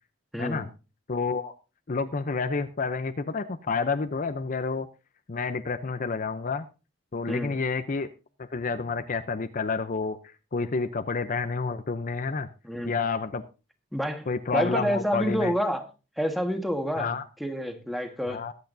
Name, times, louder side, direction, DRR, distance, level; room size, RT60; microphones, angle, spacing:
voice 1, 0.3-0.6 7.3-7.5 12.6-12.9 13.9-15.9 16.2-18.4, equal, ahead, 5 dB, 1.5 m, -29 dB
voice 2, 1.1-1.5 1.9-4.9 5.3-6.6 7.1-8.1 8.5-10.2 10.5-12.5 12.8-13.4 14.3-15.5 17.0-17.2 18.3-18.5, left 4 dB, 45° left, 9 dB, 0.6 m, -29 dB
21.5 x 8.2 x 2.7 m, 0.32 s
head